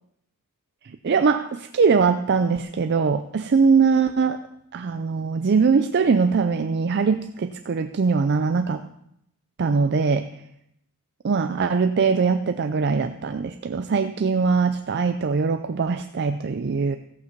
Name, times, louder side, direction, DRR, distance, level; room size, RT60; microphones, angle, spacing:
voice 1, 0.8-4.4 4.7-8.8 9.6-10.4 11.2-17.0, right 5 dB, 50° right, 9 dB, 0.4 m, -22 dB
14.5 x 8.3 x 4.5 m, 0.77 s
head